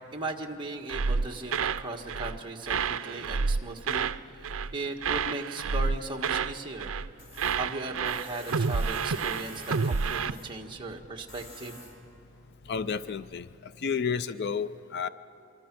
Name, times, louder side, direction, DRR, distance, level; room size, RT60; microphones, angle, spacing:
voice 1, 0.1-6.9 7.5-11.8, right 2 dB, 20° right, 0 dB, 1.5 m, -37 dB
sound 1, 0.9-2.4 2.7-4.2 4.4-4.7 5.0-6.5 6.8-7.1 7.4-10.3, right 5 dB, 70° right, 0.6 m, -29 dB
Tools, 7.2-13.3, left 1 dB, 75° left, 4.5 m, -50 dB
voice 2, 12.7-15.1, left 6 dB, 50° left, 14 dB, 0.4 m, -31 dB
25.5 x 24.5 x 6.1 m, 2.9 s
head